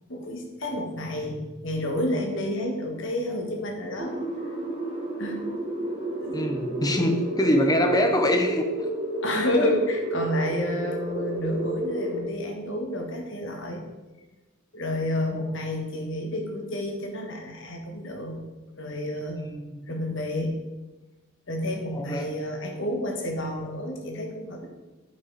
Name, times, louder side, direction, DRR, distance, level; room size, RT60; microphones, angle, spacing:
voice 1, 0.1-4.1 5.2-5.4 6.2-6.3 9.2-13.8 14.7-18.4 18.8-19.4 19.9-20.6 21.5-24.7, left 1 dB, 60° left, 2 dB, 1.4 m, -30 dB
sound 1, 4.0-12.2, right 1 dB, 25° right, 1.8 m, -31 dB
voice 2, 6.3-8.7 19.4-19.9 21.9-22.3, left 1 dB, 20° left, 5 dB, 0.8 m, -24 dB
8.8 x 5.4 x 4.1 m, 1.1 s
head